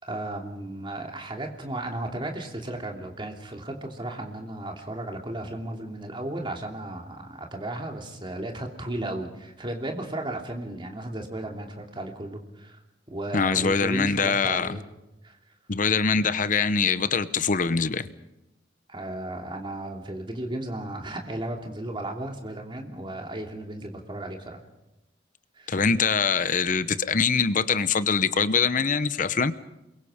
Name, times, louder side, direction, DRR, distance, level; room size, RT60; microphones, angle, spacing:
voice 1, 0.0-12.8 13.1-14.8 15.2-15.4 18.9-24.6 25.6-25.8, right 1 dB, 30° right, 2.9 m, -35 dB
voice 2, 13.3-14.8 15.7-18.1 25.7-29.5, left 5 dB, 45° left, 0.9 m, -23 dB
29.0 x 22.5 x 5.1 m
head